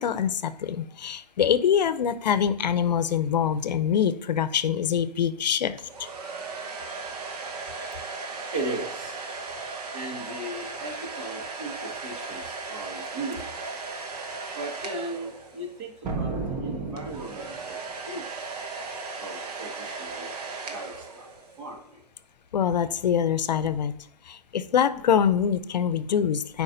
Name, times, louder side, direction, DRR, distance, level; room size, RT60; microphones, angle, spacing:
voice 1, 0.0-6.1 22.5-23.9 24.3-26.6, left 8 dB, 80° left, 14 dB, 0.6 m, -24 dB
sound 1, 5.8-15.9 17.0-21.7, right 4 dB, 65° right, 1.1 m, -37 dB
voice 2, 8.5-9.2 9.9-13.8 14.5-17.8 18.1-18.6 19.2-20.3 20.7-21.3 21.6-22.0, right 2 dB, 45° right, 1 dB, 1.8 m, -37 dB
sound 2, 16.0-17.8, right 3 dB, 15° right, 0.6 m, -32 dB
10.5 x 4.8 x 2.6 m, 0.74 s
hypercardioid pair, 145°, 21 cm